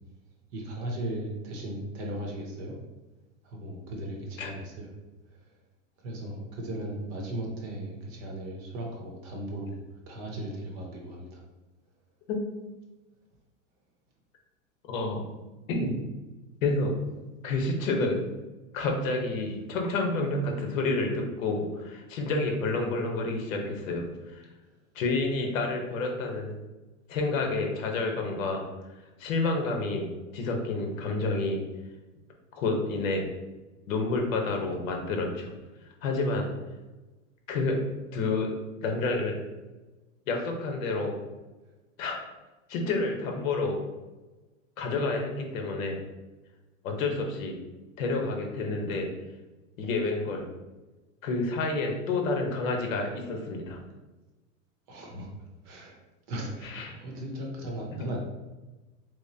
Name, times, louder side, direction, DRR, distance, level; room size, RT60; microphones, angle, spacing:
voice 1, 0.5-2.8 3.4-4.9 6.0-9.8 10.1-11.4 54.9-55.3 55.6-56.0 56.3-58.2, right 1 dB, 35° right, 0 dB, 0.7 m, -37 dB
voice 2, 14.9-15.2 15.7-16.0 16.6-17.0 17.4-18.2 18.7-24.4 24.9-26.5 27.1-28.6 29.2-30.1 30.3-31.6 32.5-33.3 33.9-35.5 36.0-36.5 37.5-37.8 38.1-38.5 38.8-39.4 40.3-41.1 42.0-42.2 42.7-43.8 44.8-46.0 46.8-47.5 48.0-49.1 49.8-50.4 51.2-53.8 56.6-57.0, left 3 dB, 80° left, 2 dB, 1.0 m, -29 dB
3.7 x 3.0 x 2.7 m, 1.2 s
supercardioid pair, 160°, 39 cm